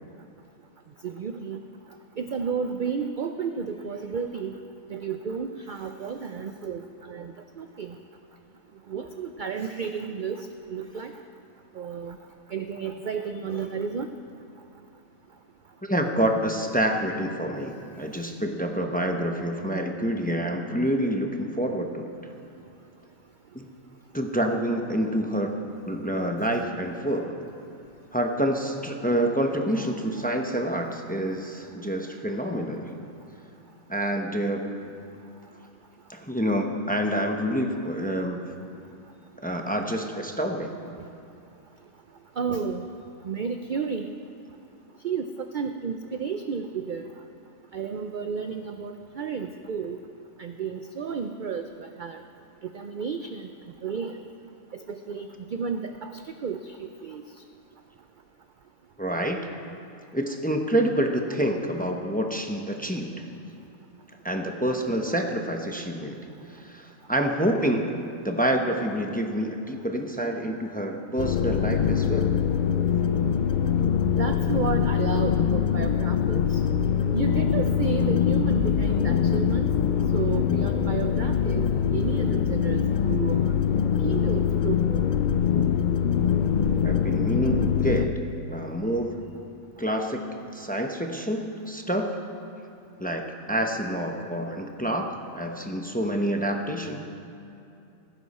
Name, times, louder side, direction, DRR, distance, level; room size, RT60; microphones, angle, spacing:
voice 1, 1.0-1.6 2.2-4.5 4.9-8.0 8.9-11.1 11.7-12.2 12.5-14.1 30.2-30.3 42.4-42.8 43.2-44.1 45.0-47.1 47.7-50.0 50.4-52.2 52.7-53.5 53.8-54.2 54.7-57.2 74.1-76.6 77.1-79.7 80.1-83.5 84.0-85.1, right 6 dB, 60° right, 7 dB, 0.5 m, -32 dB
voice 2, 15.8-22.1 23.5-23.7 24.1-25.5 25.9-27.3 28.1-32.9 33.9-34.7 36.1-38.4 39.4-40.7 59.0-59.5 60.1-63.1 64.2-66.2 66.5-67.9 68.2-72.3 86.8-88.2 88.5-89.1 89.8-90.2 90.5-92.1 93.0-97.0, right 1 dB, 10° left, 3 dB, 0.7 m, -27 dB
sound 1, 71.2-88.1, left 8 dB, 70° left, 0.4 m, -23 dB
16.0 x 15.0 x 4.2 m, 2.7 s
omnidirectional pair, 1.4 m